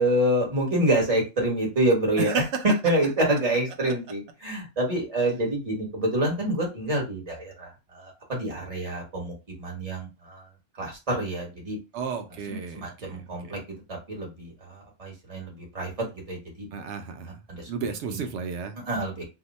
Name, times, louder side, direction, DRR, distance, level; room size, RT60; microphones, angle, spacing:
voice 1, 0.0-2.3 2.6-10.5 10.8-11.8 12.5-13.6 13.9-16.7 17.5-17.7 18.1-18.2 18.8-19.2, right 1 dB, 35° right, -1 dB, 1.2 m, -27 dB
voice 2, 2.2-2.6 3.8-3.9 11.9-13.6 16.7-17.3 17.7-18.8, right 5 dB, 85° right, 6 dB, 0.9 m, -32 dB
2.7 x 2.1 x 3.9 m, 0.27 s
omnidirectional pair, 1.1 m